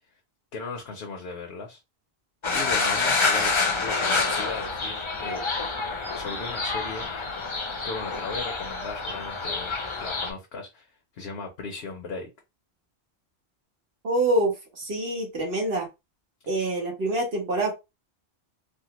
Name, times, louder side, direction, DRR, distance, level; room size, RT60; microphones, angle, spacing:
voice 1, 0.5-1.8 2.5-5.4 6.1-7.1 7.8-12.3, left 4 dB, 70° left, 1.0 m, -37 dB
sound 1, 2.4-10.3, left 4 dB, 35° left, 0.6 m, -27 dB
voice 2, 14.0-15.9 16.5-17.7, right 1 dB, 65° right, 1.6 m, -26 dB
3.4 x 2.1 x 2.9 m
omnidirectional pair, 1.1 m